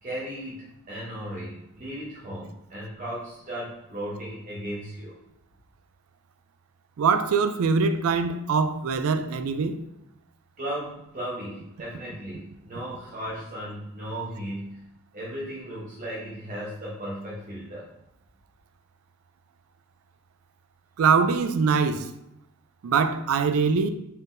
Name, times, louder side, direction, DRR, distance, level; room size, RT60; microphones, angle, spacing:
voice 1, 0.0-5.2 10.6-14.8 15.1-17.9, equal, 40° right, 0.8 m, -36 dB
voice 2, 7.0-9.8 21.0-22.1 22.8-23.9, right 5 dB, 75° right, 0.4 m, -23 dB
4.1 x 3.7 x 2.5 m
head